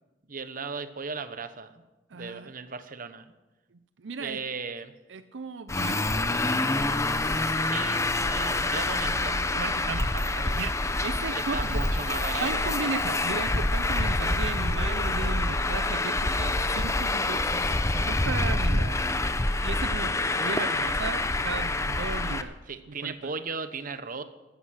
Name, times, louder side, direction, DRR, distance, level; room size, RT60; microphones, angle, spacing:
voice 1, 0.3-1.7 2.1-3.3 4.2-4.9 7.6-9.4 11.3-12.7 22.7-24.2, right 5 dB, 50° right, 11 dB, 1.1 m, -36 dB
voice 2, 2.1-2.5 3.7-4.4 5.1-6.7 9.5-11.8 12.4-19.0 19.5-22.6 22.9-23.3, right 4 dB, 80° right, 12 dB, 0.6 m, -36 dB
Traffic noise roadway noise, 5.7-22.4, left 2 dB, 15° left, 0.7 m, -26 dB
14.5 x 13.5 x 6.5 m, 1.1 s
head